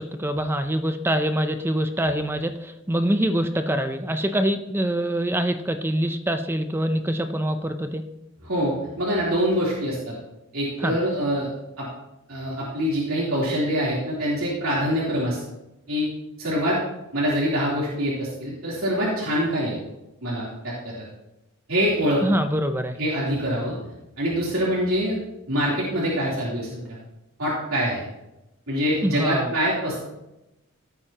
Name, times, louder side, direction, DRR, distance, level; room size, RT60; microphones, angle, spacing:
voice 1, 0.0-8.1 10.8-11.0 22.2-23.0 29.0-29.5, right 1 dB, 10° right, 8 dB, 0.5 m, -25 dB
voice 2, 8.4-10.1 10.5-11.5 11.8-11.9 12.3-15.4 15.9-16.1 16.4-16.8 17.1-19.8 20.2-20.9 21.7-22.2 23.0-23.7 24.2-25.2 25.5-26.9 27.4-28.0 28.7-30.0, equal, 75° right, -7 dB, 3.4 m, -24 dB
16.5 x 8.8 x 2.9 m, 0.94 s
head